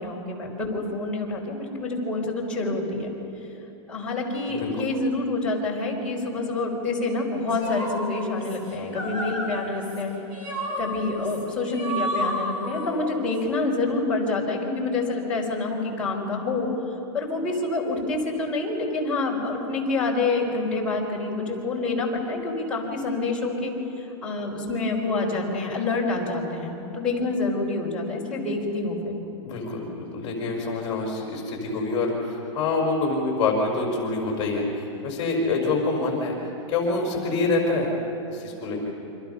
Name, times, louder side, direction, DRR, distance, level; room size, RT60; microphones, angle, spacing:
voice 1, 0.0-3.1 3.9-10.1 10.8-16.7 17.1-23.7 24.2-29.1, left 3 dB, 5° left, -6 dB, 4.4 m, -27 dB
voice 2, 4.5-4.9 29.4-36.3 36.7-37.9 38.3-38.8, left 3 dB, 25° left, 0 dB, 5.1 m, -26 dB
sound 1, 7.5-13.4, equal, 30° right, 6.9 m, -32 dB
28.5 x 26.0 x 5.7 m, 3.0 s
supercardioid pair, 165°, 17 cm